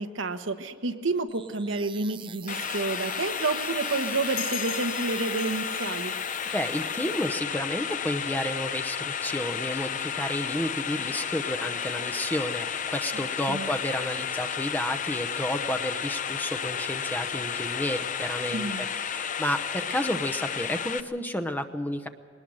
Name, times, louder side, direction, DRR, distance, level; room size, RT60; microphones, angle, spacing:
voice 1, 0.0-6.1 13.1-13.7 18.5-18.9, right 3 dB, 75° right, 7 dB, 1.2 m, -30 dB
sound 1, 1.3-7.3, right 8 dB, 25° right, 0.6 m, -44 dB
sound 2, 2.5-21.0, left 7 dB, 40° left, 0.6 m, -32 dB
sound 3, 4.4-7.5, left 11 dB, 75° left, 0.9 m, -41 dB
voice 2, 6.5-22.1, left 1 dB, 10° left, 9 dB, 0.9 m, -31 dB
21.0 x 19.5 x 6.4 m, 2.1 s
head